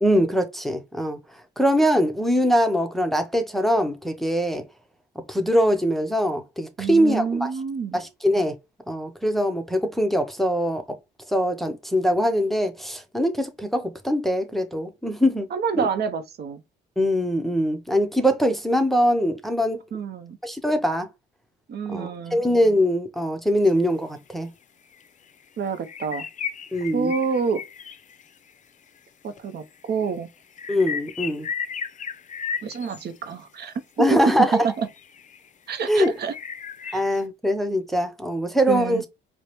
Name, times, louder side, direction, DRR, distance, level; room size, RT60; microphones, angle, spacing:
voice 1, 0.0-1.2 1.6-4.6 5.3-7.5 7.9-8.6 8.9-10.8 11.3-15.5 15.8-15.9 17.0-19.8 20.4-21.1 21.9-24.5 26.7-27.1 30.7-31.5 34.0-34.6 35.9-36.1 36.9-39.0, equal, ahead, 0.7 m, -22 dB
voice 2, 6.8-8.0 15.5-16.6 19.9-20.4 21.7-22.4 25.6-26.2 26.9-27.6 29.2-30.3 32.6-34.9 35.7-36.3 36.8-37.1 38.7-39.0, right 6 dB, 55° right, 0.6 m, -27 dB
sound 1, 23.6-23.7 24.2-24.3 24.9-25.1 25.3-25.5 25.8-28.5 29.4-29.5 29.7-33.3 34.0-35.5 36.0-37.2, left 7 dB, 40° left, 0.5 m, -35 dB
4.6 x 2.0 x 3.0 m
cardioid pair, 90°, 20 cm